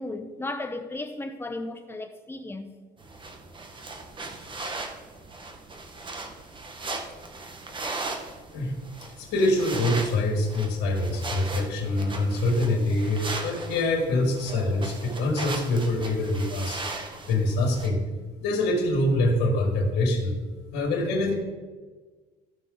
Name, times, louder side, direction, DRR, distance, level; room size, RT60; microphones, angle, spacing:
voice 1, 0.0-2.7, left 2 dB, 15° left, 1.0 m, -35 dB
sound 1, 3.0-17.9, right 3 dB, 30° right, 1.4 m, -38 dB
voice 2, 9.2-16.8 17.3-18.0 18.4-20.4 20.7-21.3, left 1 dB, 85° left, 1.8 m, -25 dB
14.0 x 5.7 x 3.9 m
cardioid pair, 110°, 17 cm